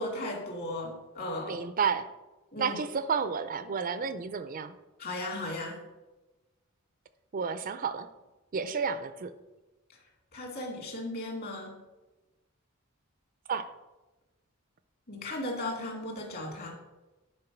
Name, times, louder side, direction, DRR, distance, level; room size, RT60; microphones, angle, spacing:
voice 1, 0.0-1.6 2.5-2.8 5.0-5.8 10.3-11.8 15.1-16.7, left 1 dB, 45° left, 0 dB, 2.3 m, -36 dB
voice 2, 1.5-2.1 2.6-4.7 7.3-8.1 8.5-9.3 13.5-13.7, right 6 dB, 40° right, 12 dB, 0.4 m, -31 dB
9.8 x 4.4 x 5.9 m, 1.1 s
head